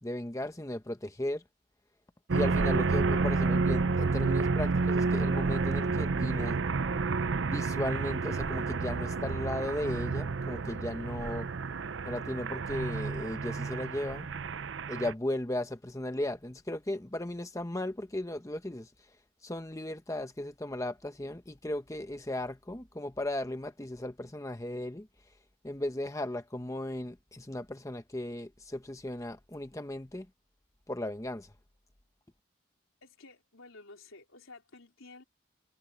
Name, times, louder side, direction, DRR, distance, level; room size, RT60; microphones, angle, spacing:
voice 1, 0.0-1.4 2.3-6.6 7.5-11.5 12.0-14.3 14.9-18.9 19.4-25.1 25.6-30.3 30.9-31.5, left 1 dB, 15° left, 0.8 m, -36 dB
sound 1, 2.3-15.1, right 4 dB, 65° right, 0.6 m, -30 dB
voice 2, 33.0-35.2, left 3 dB, 85° left, 4.1 m, -52 dB
head